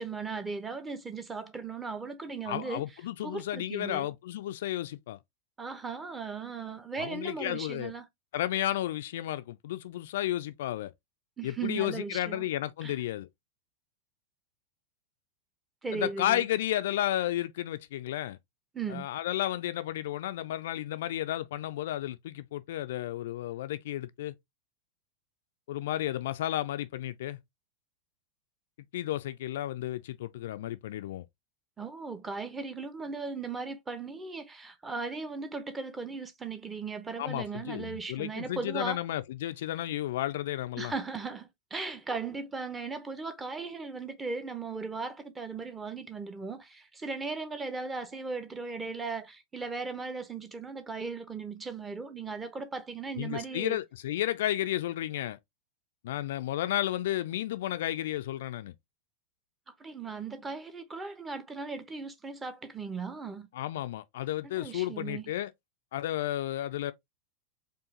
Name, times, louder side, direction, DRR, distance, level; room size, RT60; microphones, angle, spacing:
voice 1, 0.0-2.9 3.2-4.1 5.6-8.0 11.4-12.5 12.8-13.0 15.8-16.5 18.7-19.1 31.8-39.0 40.8-53.8 59.8-63.5 64.6-65.3, right 4 dB, 15° right, 0.7 m, -37 dB
voice 2, 2.5-5.2 7.0-7.9 8.3-10.9 11.4-13.3 15.9-18.4 18.9-24.3 25.7-27.4 28.9-31.2 37.2-40.9 53.2-55.4 56.0-58.7 63.5-65.5 65.9-66.9, left 13 dB, 55° left, 0.3 m, -32 dB
4.7 x 2.5 x 2.8 m
figure-of-eight pair, 90°, 0 cm